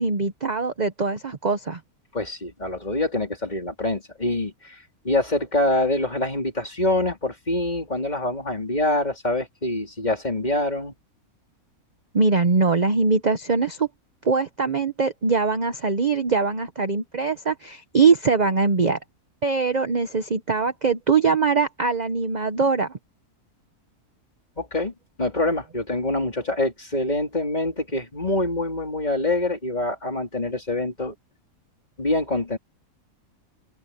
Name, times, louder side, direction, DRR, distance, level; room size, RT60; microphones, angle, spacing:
voice 1, 0.0-1.8 12.1-13.9 14.2-19.0 19.4-23.0, right 4 dB, 35° right, 0.9 m, -22 dB
voice 2, 2.1-4.8 5.0-10.9 24.6-24.9 25.2-31.1 32.0-32.6, left 2 dB, 30° left, 4.1 m, -25 dB
open air
omnidirectional pair, 1.6 m